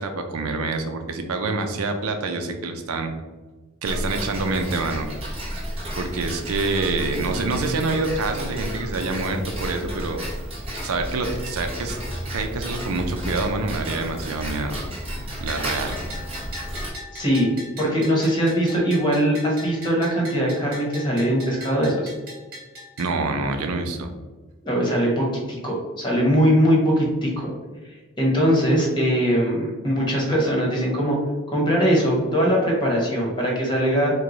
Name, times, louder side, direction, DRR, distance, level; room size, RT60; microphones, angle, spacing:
voice 1, 0.0-3.1 3.8-5.1 5.5-5.6 6.0-10.2 10.8-12.0 12.3-14.8 15.4-16.0 23.0-24.1, right 3 dB, 85° right, 5 dB, 0.5 m, -26 dB
Tick-tock, 3.8-16.9, equal, 25° right, 1.0 m, -32 dB
Bell, 15.5-23.1, left 1 dB, 50° right, 1.4 m, -39 dB
voice 2, 17.1-17.5 17.8-22.1 24.6-25.3 25.6-27.5 28.2-31.2 31.5-34.1, equal, 20° left, -2 dB, 1.1 m, -21 dB
4.6 x 2.2 x 3.9 m, 1.2 s
head